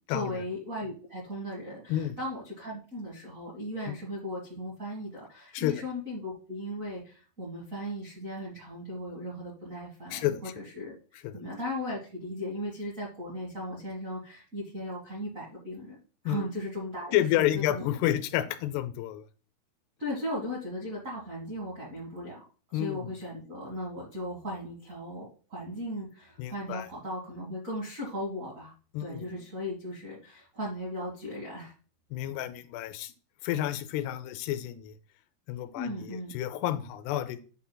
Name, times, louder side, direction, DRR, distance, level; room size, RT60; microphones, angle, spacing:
voice 1, 0.1-16.0 16.2-17.8 20.0-22.4 22.7-28.7 29.0-31.7 35.7-36.3, left 1 dB, 75° right, -5 dB, 0.7 m, -37 dB
voice 2, 17.1-19.2 22.7-23.1 26.4-26.9 28.9-29.2 32.1-33.1 33.4-34.9 35.5-37.4, left 13 dB, 90° left, 11 dB, 2.7 m, -30 dB
9.0 x 5.7 x 2.2 m, 0.38 s
omnidirectional pair, 4.6 m